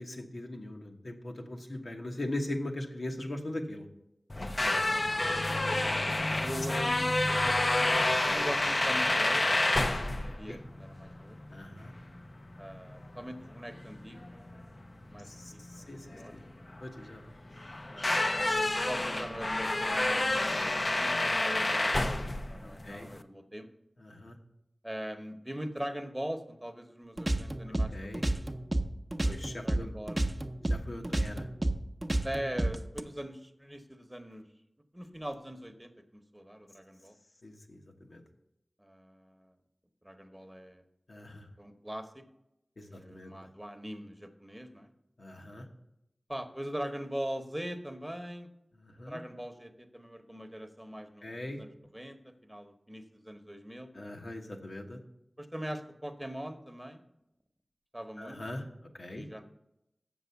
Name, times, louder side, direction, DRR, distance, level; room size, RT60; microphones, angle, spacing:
voice 1, 0.0-3.9 4.6-5.0 7.4-7.5 10.1-10.6 11.5-11.9 15.2-16.1 16.3-16.4 16.8-17.2 22.6-23.1 24.0-24.4 27.7-28.2 29.2-29.9 30.7-31.5 37.4-37.8 38.1-38.2 41.1-41.5 42.8-43.3 45.2-45.6 48.8-49.2 51.2-51.6 53.9-55.0 58.2-58.6 58.9-59.2, left 1 dB, 75° left, 1 dB, 1.2 m, -40 dB
sound 1, 4.3-23.2, left 2 dB, 45° left, 0.5 m, -29 dB
voice 2, 4.6-5.4 6.4-7.1 8.2-9.5 10.1-11.4 12.6-14.4 15.1-16.3 17.9-20.6 21.0-23.7 24.8-28.4 29.6-30.3 32.2-34.5 34.9-37.1 38.8-39.5 40.0-40.8 41.6-42.2 42.9-44.9 46.3-48.5 49.0-53.9 55.4-57.0 57.9-58.4 59.1-59.4, equal, 15° right, 7 dB, 0.9 m, -41 dB
sound 2, 27.2-29.8 30.1-33.0, right 1 dB, 35° right, 0.7 m, -30 dB
7.4 x 6.1 x 6.9 m, 0.84 s
wide cardioid pair, 50°, 0 cm